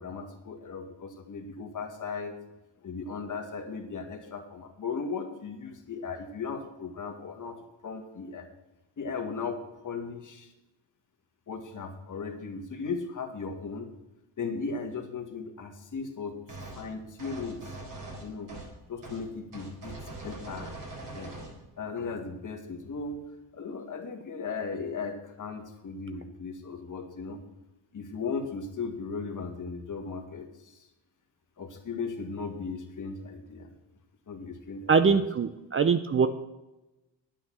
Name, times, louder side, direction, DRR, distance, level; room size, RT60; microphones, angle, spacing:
voice 1, 0.0-2.4 2.8-8.5 9.0-10.5 11.5-13.9 14.4-16.4 16.8-17.7 18.2-18.5 18.9-20.8 21.1-21.3 21.8-23.2 23.5-27.4 27.9-30.8 31.6-33.7 34.3-35.2, left 4 dB, 40° left, 4 dB, 1.9 m, -37 dB
sound 1, 16.5-16.8 17.2-18.7 19.0-19.2 19.5-21.6, right 2 dB, 45° right, 4.1 m, -42 dB
voice 2, 34.9-36.3, right 5 dB, 30° right, 11 dB, 0.6 m, -23 dB
9.4 x 9.0 x 6.2 m, 1.0 s
cardioid pair, 90°, 45 cm